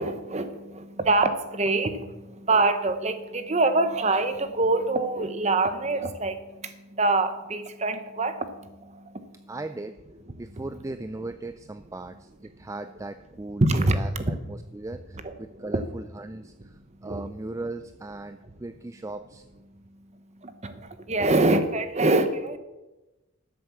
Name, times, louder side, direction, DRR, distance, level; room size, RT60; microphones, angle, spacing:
voice 1, 0.0-9.3 13.6-14.3 15.2-15.3 15.7-15.8 17.0-17.2 20.4-22.6, right 2 dB, 30° right, 10 dB, 0.9 m, -25 dB
voice 2, 9.5-9.9 10.4-19.4, right 2 dB, 15° right, 10 dB, 0.3 m, -38 dB
13.0 x 7.6 x 7.0 m, 1.1 s
head